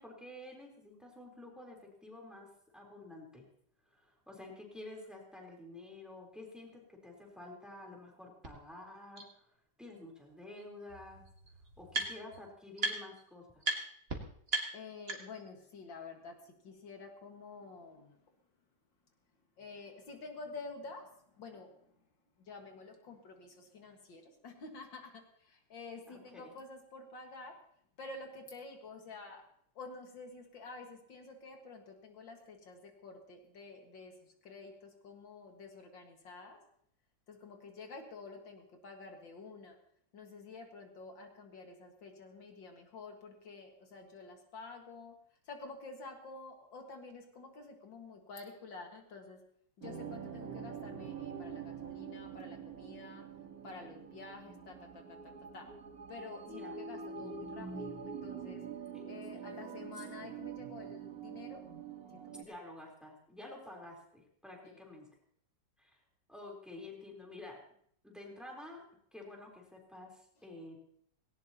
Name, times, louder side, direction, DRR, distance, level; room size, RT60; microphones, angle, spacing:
voice 1, 0.0-2.5 2.7-3.4 3.9-9.5 9.8-11.2 11.8-13.6 26.1-26.5 56.5-56.7 58.9-59.7 62.3-65.1 65.8-66.0 66.3-67.6 68.0-68.8 69.1-70.9, left 2 dB, ahead, -1 dB, 3.8 m, -50 dB
sound 1, 8.4-8.5 9.2-9.3 10.5-10.6 10.9-12.4 12.8-13.2 13.6-13.8 14.1-14.2 14.5-15.5, right 2 dB, 35° right, 1.9 m, -36 dB
voice 2, 14.7-18.2 19.6-21.9 22.4-27.6 28.0-29.5 29.7-36.6 37.3-39.8 40.1-45.2 45.5-49.4 49.8-53.3 53.6-55.7 56.1-58.6 59.1-61.6 62.1-62.5 64.6-64.8, left 3 dB, 80° left, 3 dB, 2.6 m, -49 dB
sound 2, 49.8-62.4, right 6 dB, 55° right, 1.8 m, -45 dB
18.0 x 18.0 x 2.9 m, 0.64 s
omnidirectional pair, 2.0 m